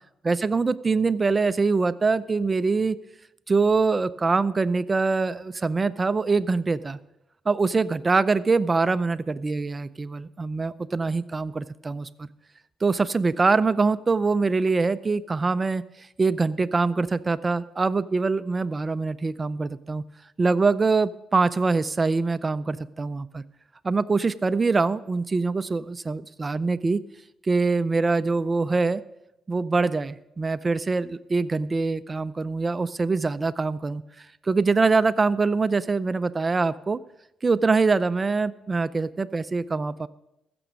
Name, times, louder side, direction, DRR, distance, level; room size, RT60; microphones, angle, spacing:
voice 1, 0.2-3.0 3.5-7.0 7.5-12.3 12.8-15.8 16.2-20.0 20.4-23.4 23.8-27.0 27.5-29.0 29.5-34.0 34.4-37.0 37.4-40.1, right 4 dB, 25° right, 15 dB, 0.5 m, -24 dB
15.0 x 6.9 x 5.3 m, 0.88 s
cardioid pair, 90°, 0 cm